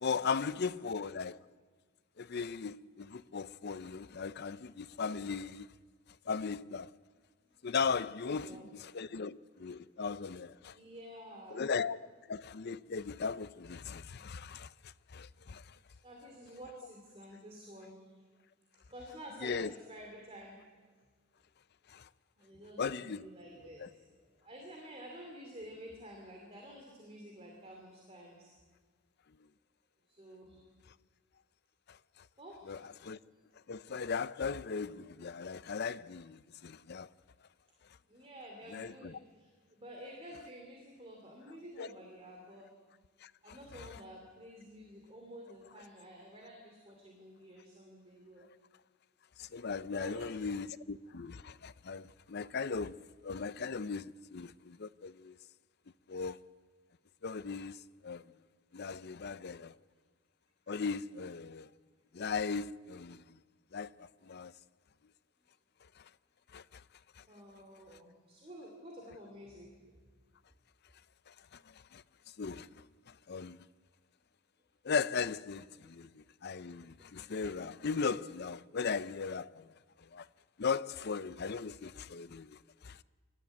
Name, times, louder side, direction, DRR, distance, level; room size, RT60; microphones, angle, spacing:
voice 1, 0.0-1.4 2.2-5.7 6.3-6.9 7.6-10.8 11.5-12.0 12.3-15.8 19.4-19.7 21.9-22.1 22.8-23.3 23.8-23.9 31.9-32.0 32.7-33.2 33.7-37.1 38.7-39.1 41.8-41.9 43.2-43.9 49.4-55.4 56.1-56.4 57.2-58.2 58.7-59.8 60.7-61.7 62.1-63.2 63.7-64.5 66.0-66.1 66.5-66.8 67.2-67.3 71.3-72.0 72.4-72.8 73.3-73.6 74.8-79.7 80.0-80.3 80.6-83.0, left 5 dB, 50° left, 0.5 m, -38 dB
voice 2, 8.2-8.8 10.7-11.6 16.0-18.2 18.8-20.6 22.4-28.5 30.1-30.6 32.4-32.9 38.1-42.7 43.4-48.5 49.9-50.5 52.4-52.6 67.3-70.0, equal, 30° right, 2.9 m, -51 dB
24.0 x 13.0 x 9.3 m
head